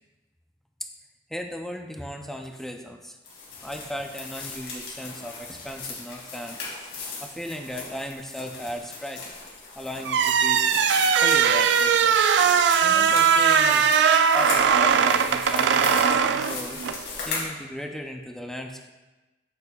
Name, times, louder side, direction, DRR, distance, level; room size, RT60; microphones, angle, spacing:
voice 1, 1.3-3.2 3.6-6.9 7.2-9.2 9.8-10.7 11.2-12.2 12.8-13.9 14.3-16.8 17.2-18.9, equal, ahead, 3 dB, 0.4 m, -36 dB
sound 1, 3.2-17.5, left 4 dB, 90° left, 2.4 m, -37 dB
sound 2, 10.1-17.0, right 7 dB, 75° right, 0.3 m, -20 dB
8.4 x 6.8 x 2.3 m, 1.1 s
head